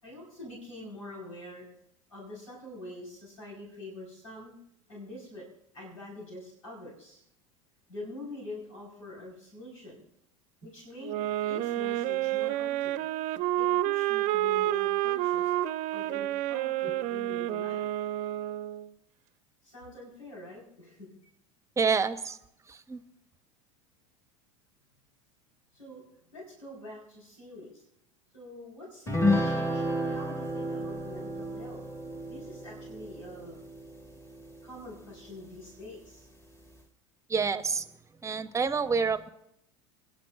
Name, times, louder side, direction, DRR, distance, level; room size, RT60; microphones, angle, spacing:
voice 1, 0.0-1.7 2.1-4.5 4.9-5.5 5.7-7.2 7.9-10.0 10.6-13.0 13.6-15.5 15.9-17.9 19.6-21.1 25.7-26.0 26.3-27.8 28.3-31.8 32.3-33.6 34.6-36.3, left 2 dB, 85° left, -3 dB, 4.6 m, -45 dB
sound 1, 11.0-18.9, right 14 dB, 50° right, 0.6 m, -29 dB
voice 2, 21.8-22.4 22.7-23.0 37.3-37.9 38.2-39.3, right 5 dB, 20° right, 13 dB, 0.8 m, -28 dB
sound 2, 29.1-34.7, left 1 dB, 15° left, 1.7 m, -31 dB
29.5 x 10.5 x 2.5 m, 0.77 s
hypercardioid pair, 80°, 16 cm